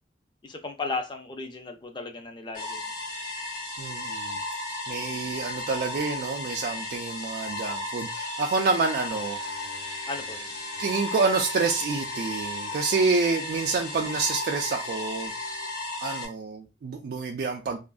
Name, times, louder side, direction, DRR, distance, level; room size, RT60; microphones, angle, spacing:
voice 1, 0.4-2.8 10.1-10.5, left 3 dB, 25° left, 0.4 m, -35 dB
sound 1, 2.5-16.3, left 2 dB, 55° left, 0.7 m, -34 dB
voice 2, 3.8-4.4 4.9-9.4 10.8-15.3 16.0-17.8, right 4 dB, 60° right, 0.3 m, -28 dB
sound 2, 9.1-15.7, left 4 dB, 85° left, 0.7 m, -50 dB
2.7 x 2.5 x 2.2 m
head